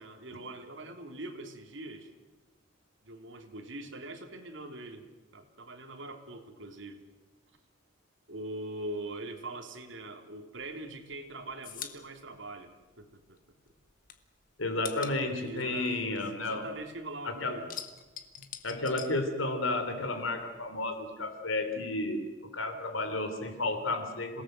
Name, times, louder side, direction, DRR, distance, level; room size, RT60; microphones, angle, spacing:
voice 1, 0.0-2.1 3.0-7.0 8.3-13.4 15.4-17.6 18.7-18.8, right 2 dB, 65° right, 4 dB, 3.4 m, -42 dB
sound 1, 10.6-13.4 13.7-17.0 17.3-19.9 20.2-21.3, left 9 dB, 45° left, 1.7 m, -45 dB
voice 2, 14.6-16.7 17.2-17.6 18.6-24.4, left 2 dB, 75° left, 8 dB, 3.5 m, -32 dB
27.5 x 18.0 x 7.8 m, 1.2 s
head